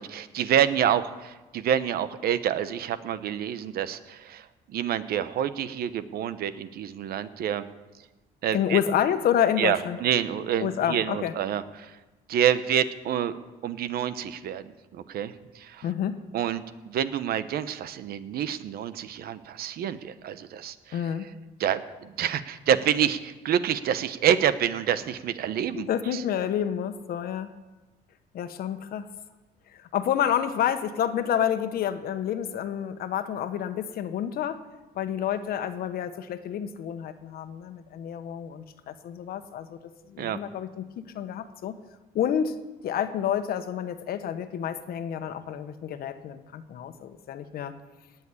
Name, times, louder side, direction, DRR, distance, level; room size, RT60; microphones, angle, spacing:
voice 1, 0.0-7.6 8.4-8.8 9.6-12.0 12.3-13.4 13.6-15.9 16.3-21.0 21.6-26.2 40.2-40.4, right 9 dB, 65° right, 13 dB, 1.0 m, -27 dB
voice 2, 8.5-10.0 10.6-11.4 15.8-16.2 20.9-21.3 25.8-27.5 28.3-29.1 29.7-34.6 34.9-39.8 40.1-40.9 41.1-41.7 42.1-42.5 42.8-47.7, left 9 dB, 65° left, 10 dB, 1.3 m, -29 dB
18.0 x 7.3 x 9.9 m, 1.2 s
cardioid pair, 110°, 17 cm